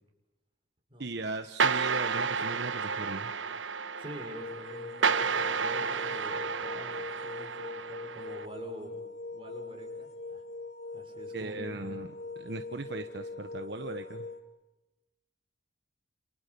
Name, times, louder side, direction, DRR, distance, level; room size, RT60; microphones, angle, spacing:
voice 1, 1.0-3.3 11.3-12.1 12.4-14.3, right 2 dB, 60° right, 7 dB, 1.2 m, -38 dB
sound 1, 1.6-8.5, right 5 dB, 80° right, 1.1 m, -31 dB
voice 2, 4.0-9.0 9.3-10.4 10.9-11.8, equal, 30° right, 2 dB, 5.8 m, -46 dB
sound 2, 4.3-14.4, left 3 dB, 35° left, 2.1 m, -42 dB
30.0 x 28.5 x 7.0 m, 1.0 s
head